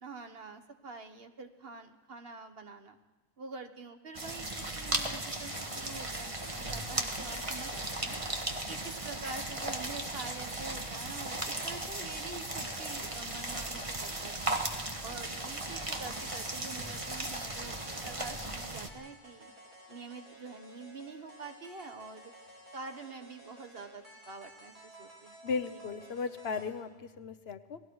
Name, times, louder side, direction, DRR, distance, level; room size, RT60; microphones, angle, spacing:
voice 1, 0.0-3.0 3.4-7.7 8.0-8.2 8.7-14.6 15.0-17.8 18.0-19.5 19.9-22.3 22.7-25.4, right 4 dB, 65° right, 7 dB, 1.6 m, -46 dB
sound 1, 4.1-18.9, right 2 dB, 30° right, 1.7 m, -36 dB
sound 2, 15.8-26.8, right 1 dB, 45° right, 5.3 m, -54 dB
voice 2, 25.4-27.8, left 5 dB, 70° left, 11 dB, 1.2 m, -36 dB
29.5 x 19.5 x 4.8 m, 1.2 s
omnidirectional pair, 1.1 m